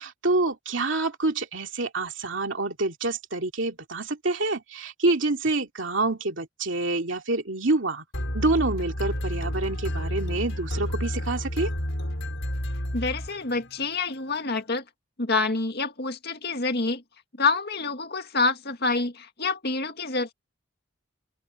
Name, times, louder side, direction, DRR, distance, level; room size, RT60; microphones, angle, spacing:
voice 1, 0.0-8.0 8.3-11.7, right 2 dB, 65° right, 2.6 m, -27 dB
sound 1, 8.1-13.8, equal, 75° left, 5.6 m, -30 dB
voice 2, 12.9-14.8 15.2-17.0 17.4-20.3, left 3 dB, 55° left, 2.1 m, -27 dB
open air
head